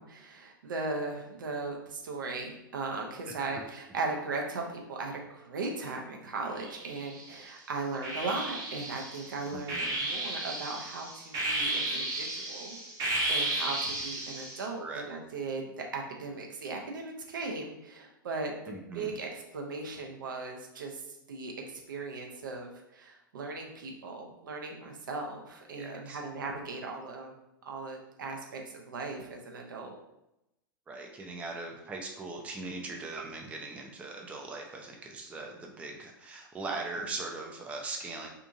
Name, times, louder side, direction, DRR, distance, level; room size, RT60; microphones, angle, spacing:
voice 1, 0.0-12.8 13.3-21.5 21.9-27.3 27.7-30.0, right 3 dB, 65° right, 1 dB, 0.6 m, -38 dB
sound 1, 6.6-7.4 8.0-14.7, right 2 dB, 30° right, 0.8 m, -33 dB
voice 2, 9.5-9.9 14.8-15.1 18.7-19.1 25.7-26.2 30.9-38.3, right 3 dB, 10° right, 1 dB, 0.3 m, -40 dB
2.7 x 2.5 x 2.6 m, 0.87 s
figure-of-eight pair, 95°, 11 cm